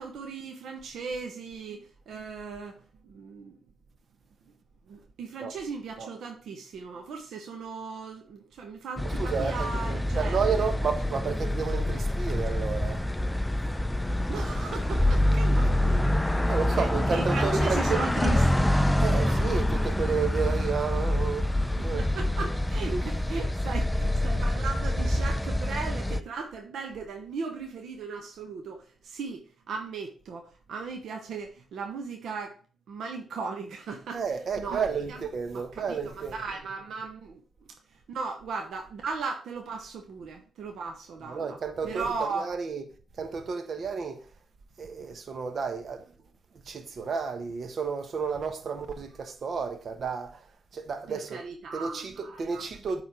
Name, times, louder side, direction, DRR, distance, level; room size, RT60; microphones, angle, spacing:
voice 1, 0.0-3.6 4.9-10.7 14.3-19.8 21.8-32.6 32.9-34.2 34.6-35.2 35.5-37.4 38.1-41.6 41.8-42.5 51.1-52.6, right 4 dB, 75° right, 0.9 m, -37 dB
sound 1, 9.0-26.2, left 1 dB, 10° left, 0.4 m, -26 dB
voice 2, 9.0-9.7 10.1-13.0 15.6-15.7 16.5-18.1 19.0-21.5 21.8-22.1 22.9-23.0 34.1-36.5 41.2-44.3 44.8-46.1 46.6-50.4 50.7-51.4 51.7-53.0, right 5 dB, 55° right, 1.1 m, -32 dB
8.1 x 3.6 x 4.8 m
cardioid pair, 75°, 0 cm